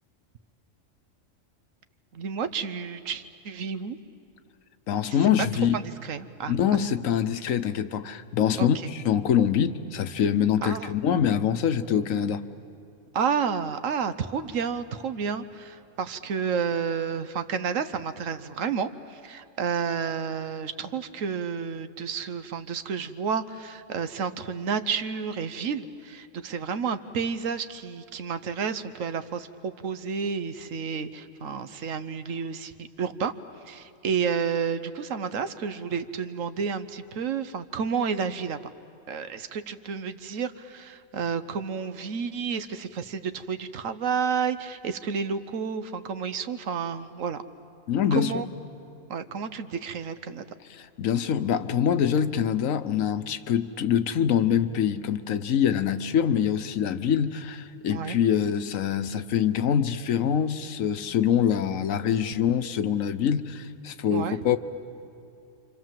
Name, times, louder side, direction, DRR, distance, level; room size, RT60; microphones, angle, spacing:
voice 1, 2.1-4.0 5.1-5.5 5.7-6.5 8.6-8.9 10.6-10.9 13.1-33.3 33.6-38.6 39.1-47.4 48.1-48.5 49.1-50.5 57.9-58.2 64.1-64.6, right 6 dB, 80° right, 11 dB, 1.3 m, -31 dB
voice 2, 4.9-5.7 6.5-12.4 47.9-48.3 51.0-64.6, left 8 dB, 85° left, 11 dB, 1.3 m, -24 dB
28.5 x 26.0 x 7.5 m, 2.7 s
omnidirectional pair, 1.3 m